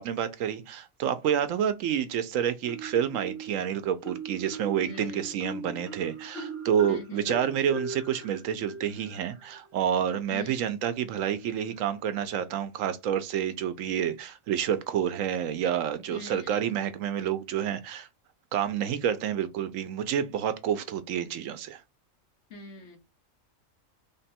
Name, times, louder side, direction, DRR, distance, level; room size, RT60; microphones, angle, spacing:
voice 1, 0.0-18.1 18.5-21.8, right 9 dB, 75° right, 0.9 m, -29 dB
Marimba xylophone, 2.6-3.6 4.0-9.5, right 2 dB, 50° right, 1.2 m, -39 dB
voice 2, 4.8-5.3 6.9-7.3 10.3-10.7 16.1-16.8 22.5-23.0, left 2 dB, 60° left, 1.5 m, -43 dB
3.6 x 2.2 x 4.1 m
omnidirectional pair, 1.4 m